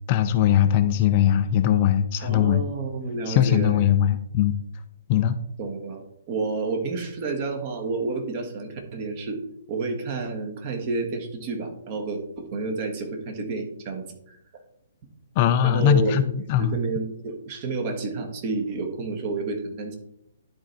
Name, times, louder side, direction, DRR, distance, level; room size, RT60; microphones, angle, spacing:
voice 1, 0.1-2.6 3.3-4.6 5.1-5.4 15.4-16.8, left 10 dB, 35° left, 10 dB, 0.5 m, -20 dB
voice 2, 2.2-3.8 5.6-9.4 9.7-14.4 15.6-16.2 16.6-19.9, right 3 dB, 35° right, 4 dB, 1.5 m, -30 dB
10.5 x 4.4 x 4.0 m, 0.76 s
figure-of-eight pair, 125°, 0 cm